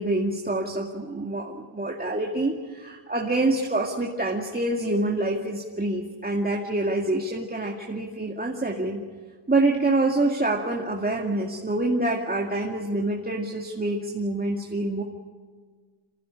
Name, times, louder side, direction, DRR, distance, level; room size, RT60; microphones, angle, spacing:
voice 1, 0.0-9.0 9.5-15.0, right 2 dB, 20° right, -1 dB, 2.3 m, -26 dB
26.5 x 16.0 x 10.0 m, 1.5 s
wide cardioid pair, 110°, 45 cm